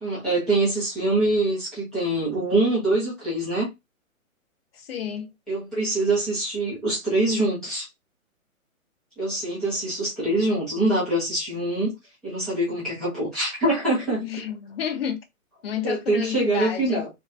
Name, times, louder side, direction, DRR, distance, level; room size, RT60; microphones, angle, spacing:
voice 1, 0.0-3.7 5.5-7.9 9.2-11.9 12.2-14.3 15.8-17.1, right 2 dB, ahead, 0.4 m, -24 dB
voice 2, 4.7-5.3 14.2-15.2 15.6-17.0, left 8 dB, 45° left, 0.8 m, -30 dB
4.0 x 2.2 x 3.4 m
hypercardioid pair, 140°, 42 cm